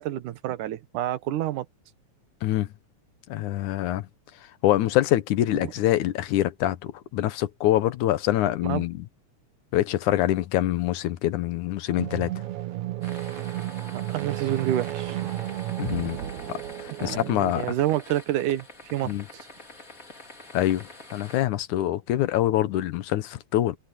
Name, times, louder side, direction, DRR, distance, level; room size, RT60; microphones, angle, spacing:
voice 1, 0.0-1.7 5.5-5.7 8.6-8.8 14.1-15.3 17.0-19.5, right 13 dB, 90° right, 2.6 m, -28 dB
voice 2, 3.3-4.1 4.6-9.0 9.7-12.3 15.8-16.2 16.5-17.7 19.0-19.2 20.5-23.8, left 14 dB, 80° left, 2.4 m, -25 dB
sound 1, 11.9-17.5, right 14 dB, 70° right, 2.7 m, -33 dB
sound 2, 13.0-21.4, left 2 dB, 25° left, 4.0 m, -46 dB
omnidirectional pair, 3.5 m